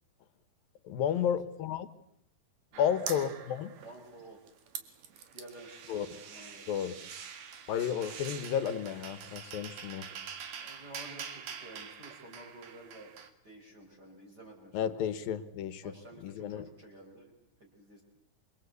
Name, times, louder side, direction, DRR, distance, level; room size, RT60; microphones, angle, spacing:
voice 1, 0.8-1.9 2.8-3.7 5.9-6.1 6.7-6.9 7.7-10.1 14.7-15.8 16.2-16.7, left 9 dB, 75° left, 14 dB, 3.0 m, -32 dB
voice 2, 2.7-3.3 3.8-4.4 4.8-6.7 10.6-13.1 13.4-15.0 15.8-17.3 17.6-18.0, right 1 dB, 25° right, 0 dB, 5.2 m, -51 dB
sound 1, 2.7-4.2 4.5-13.3, right 7 dB, 65° right, 3.5 m, -45 dB
27.5 x 23.5 x 8.3 m, 0.76 s
omnidirectional pair, 4.3 m